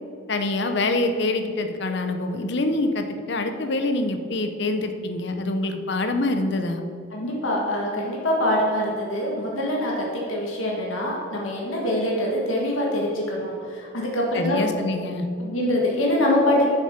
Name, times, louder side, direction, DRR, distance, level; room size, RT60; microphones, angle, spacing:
voice 1, 0.3-6.8 14.3-15.3, left 2 dB, 55° left, 7 dB, 0.7 m, -25 dB
voice 2, 7.1-14.6 15.4-16.7, left 1 dB, 75° left, -2 dB, 1.7 m, -24 dB
7.2 x 6.4 x 5.9 m, 2.4 s
head